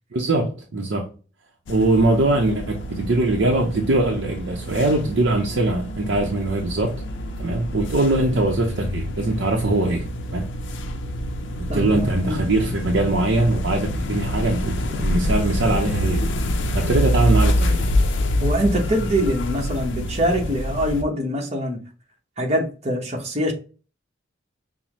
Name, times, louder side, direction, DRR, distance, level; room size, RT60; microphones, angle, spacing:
voice 1, 0.1-1.1 1.7-6.9 7.4-10.5 11.6-16.4 16.7-17.9, right 2 dB, 65° right, 0.6 m, -22 dB
sound 1, 1.7-21.0, equal, 65° left, 0.5 m, -26 dB
voice 2, 11.7-12.4 18.4-21.8 22.4-23.5, equal, 35° right, 0.9 m, -24 dB
5.5 x 2.0 x 3.0 m
head